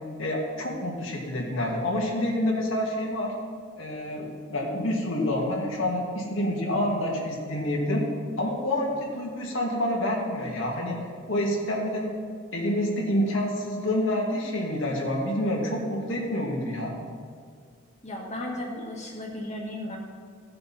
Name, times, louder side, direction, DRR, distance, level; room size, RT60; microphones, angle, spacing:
voice 1, 0.2-3.3 3.8-8.0 8.4-11.0 11.3-12.1 12.5-16.9, left 1 dB, 75° left, -2 dB, 2.2 m, -28 dB
voice 2, 18.0-20.0, left 1 dB, 35° left, -1 dB, 1.9 m, -35 dB
16.0 x 6.6 x 4.3 m, 2.1 s
head